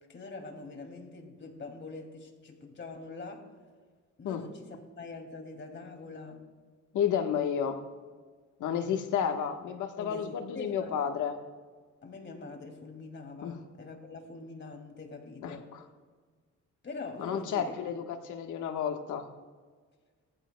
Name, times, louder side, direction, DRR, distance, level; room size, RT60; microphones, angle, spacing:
voice 1, 0.1-3.5 4.2-6.5 10.0-11.1 12.0-15.7 16.8-17.7, left 3 dB, 40° left, 3 dB, 2.6 m, -44 dB
voice 2, 6.9-7.8 8.6-11.3 13.4-13.6 15.4-15.8 17.2-19.2, left 8 dB, 80° left, 5 dB, 1.4 m, -31 dB
19.5 x 14.5 x 2.3 m, 1.5 s
cardioid pair, 90°, 30 cm